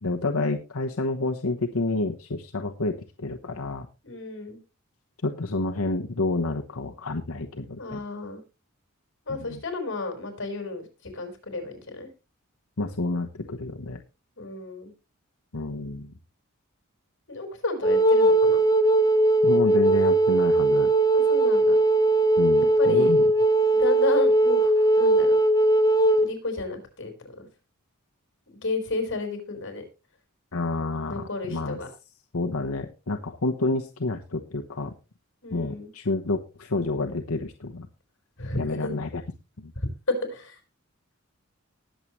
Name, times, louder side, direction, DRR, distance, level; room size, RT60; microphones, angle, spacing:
voice 1, 0.0-3.9 5.2-8.0 9.3-9.6 12.8-14.0 15.5-16.1 19.4-20.9 22.4-23.2 30.5-31.8 32.3-34.9 35.5-37.9 38.6-39.2 39.6-39.7, left 2 dB, 90° left, 4 dB, 1.1 m, -29 dB
voice 2, 4.0-4.6 7.8-8.4 9.3-10.9 11.1-12.1 14.4-14.9 17.3-18.6 21.1-21.8 22.8-23.1 23.7-25.4 26.2-27.1 27.4-27.5 28.6-29.8 31.1-31.9 35.4-35.9 38.4-38.9 40.3-40.6, left 3 dB, 60° left, 6 dB, 4.7 m, -32 dB
Wind instrument woodwind instrument, 17.8-26.3, right 2 dB, 20° left, 0.9 m, -19 dB
19.5 x 7.6 x 3.1 m, 0.30 s
head